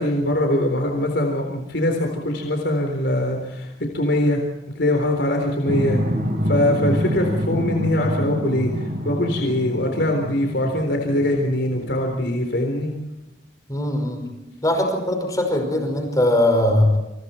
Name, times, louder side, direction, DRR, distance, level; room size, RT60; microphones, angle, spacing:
voice 1, 0.0-4.4 4.7-6.0 6.4-12.9, left 1 dB, 65° left, 2 dB, 4.0 m, -22 dB
sound 1, 5.7-12.2, equal, 50° right, 3.7 m, -26 dB
voice 2, 13.7-14.2 14.6-17.0, left 1 dB, 20° left, 4 dB, 5.4 m, -20 dB
28.0 x 27.5 x 4.5 m, 0.96 s
head